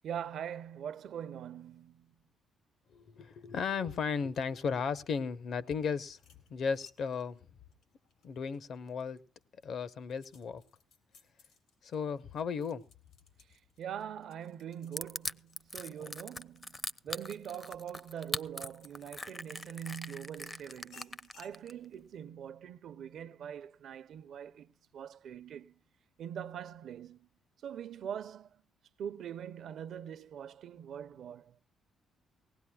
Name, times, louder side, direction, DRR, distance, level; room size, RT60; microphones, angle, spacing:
voice 1, 0.0-2.1 13.5-25.7 26.2-27.3 27.6-28.5 29.0-31.6, right 9 dB, 70° right, 0.7 m, -43 dB
voice 2, 2.9-6.2 6.5-7.4 8.2-9.2 9.6-10.6 11.8-12.8 16.0-16.1, left 6 dB, 60° left, 0.9 m, -35 dB
sound 1, 6.1-8.9 9.4-19.6 20.1-21.6, left 5 dB, 90° left, 3.3 m, -63 dB
Crushing, 15.0-21.7, left 2 dB, 20° left, 0.6 m, -40 dB
19.5 x 17.5 x 2.3 m
cardioid pair, 90°, 0 cm